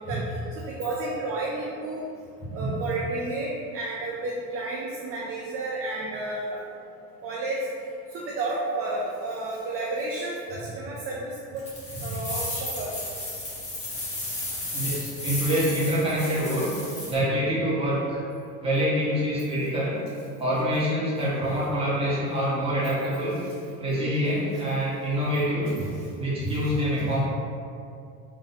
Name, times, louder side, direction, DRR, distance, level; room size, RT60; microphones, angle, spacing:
voice 1, 0.6-2.0 2.5-6.6 7.2-7.7 8.1-11.6 12.0-12.9, right 2 dB, 40° right, -4 dB, 0.5 m, -31 dB
voice 2, 2.4-2.8 12.1-12.2 14.7-16.7 17.1-18.2 18.6-20.0 20.4-23.4 23.8-25.9 26.2-27.2, equal, 15° right, -8 dB, 1.3 m, -26 dB
sound 1, 11.6-17.1, left 1 dB, 20° left, 1.3 m, -34 dB
4.0 x 3.1 x 4.1 m, 2.4 s
cardioid pair, 145°, 36 cm